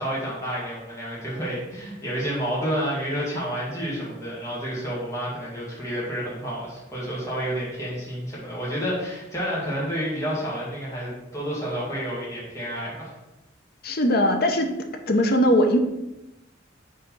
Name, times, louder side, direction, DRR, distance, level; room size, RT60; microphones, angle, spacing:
voice 1, 0.0-13.1, equal, 15° left, -7 dB, 1.8 m, -30 dB
voice 2, 13.8-14.7 15.1-15.8, equal, 50° left, 5 dB, 0.7 m, -20 dB
4.8 x 3.7 x 5.4 m, 0.95 s
head